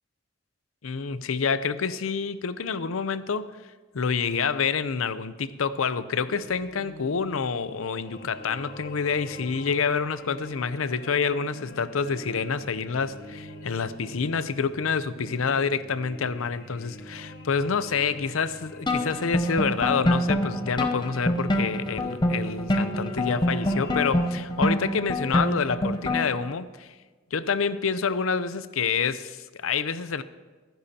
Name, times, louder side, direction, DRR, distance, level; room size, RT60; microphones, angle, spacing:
voice 1, 0.8-3.5 3.9-26.9 27.3-30.2, left 5 dB, 90° left, 0.6 m, -27 dB
sound 1, 6.3-24.3, left 1 dB, 50° left, 1.1 m, -44 dB
sound 2, 18.9-26.5, left 1 dB, 20° left, 0.7 m, -26 dB
24.5 x 10.5 x 2.8 m
head